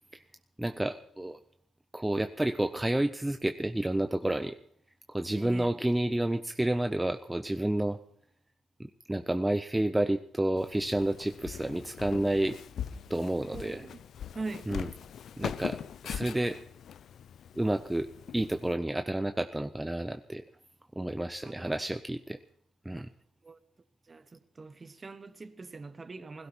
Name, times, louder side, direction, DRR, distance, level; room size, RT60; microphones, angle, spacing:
voice 1, 0.6-1.4 1.9-4.5 5.1-8.0 8.8-12.6 13.1-13.8 14.7-14.9 15.4-15.8 16.0-16.6 17.6-20.4 21.0-22.4 22.9-23.1, right 1 dB, 10° right, 0.6 m, -30 dB
voice 2, 5.4-5.8 13.5-14.0 14.3-14.7 21.4-21.7 22.9-23.0 23.4-23.6 24.1-26.5, right 3 dB, 30° right, 1.2 m, -42 dB
Walk footsteps, 10.6-18.7, left 9 dB, 65° left, 0.6 m, -41 dB
18.0 x 16.0 x 4.4 m
cardioid pair, 90°, 0 cm